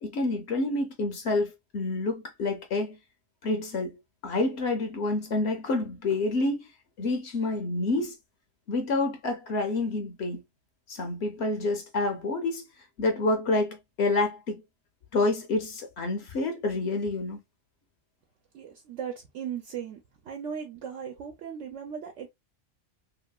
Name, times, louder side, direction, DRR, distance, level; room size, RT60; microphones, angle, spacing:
voice 1, 0.0-3.0 3.4-6.7 7.0-8.2 8.7-10.4 10.9-12.7 13.0-14.6 15.1-17.4, left 2 dB, 60° left, 0.9 m, -28 dB
voice 2, 18.5-22.3, right 7 dB, 70° right, 1.0 m, -37 dB
2.9 x 2.8 x 2.2 m
omnidirectional pair, 1.3 m